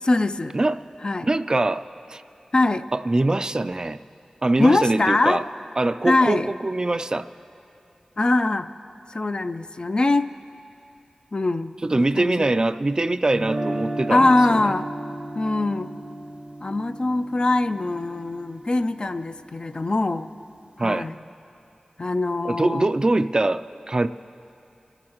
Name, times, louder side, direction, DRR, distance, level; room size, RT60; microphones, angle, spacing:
voice 1, 0.0-0.5 1.0-1.3 2.5-2.9 4.6-5.4 6.0-6.5 8.2-8.7 9.1-10.3 11.3-12.5 14.1-14.9 15.3-16.0 16.6-20.3 20.8-21.2 22.0-22.9, left 2 dB, 45° left, 10 dB, 0.4 m, -22 dB
voice 2, 1.2-2.2 2.9-4.0 4.4-5.4 5.8-7.3 11.8-14.6 20.8-21.1 22.4-24.1, right 2 dB, 35° right, 11 dB, 0.4 m, -23 dB
Guitar, 13.3-19.3, right 1 dB, 65° right, 0.8 m, -34 dB
26.0 x 12.5 x 3.0 m, 2.8 s
wide cardioid pair, 60°, 2 cm